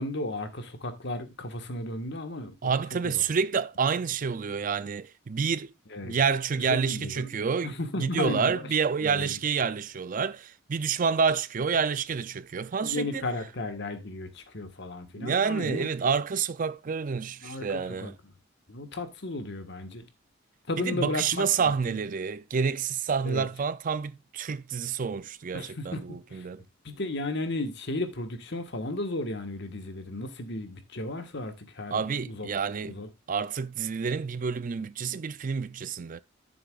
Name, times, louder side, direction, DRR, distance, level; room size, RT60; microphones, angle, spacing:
voice 1, 0.0-2.5 3.0-3.2 5.9-6.1 6.7-7.3 7.6-8.5 9.0-9.3 12.8-15.9 17.4-18.1 18.7-20.0 20.7-21.4 21.9-22.0 23.2-23.5 25.5-26.0 26.3-26.5 26.8-32.5 32.9-33.1, left 2 dB, 60° left, 1.5 m, -34 dB
voice 2, 2.6-5.7 6.0-13.3 15.2-18.2 20.8-26.6 31.9-33.0 33.3-36.2, right 6 dB, 40° right, 0.4 m, -28 dB
13.0 x 7.0 x 2.4 m
head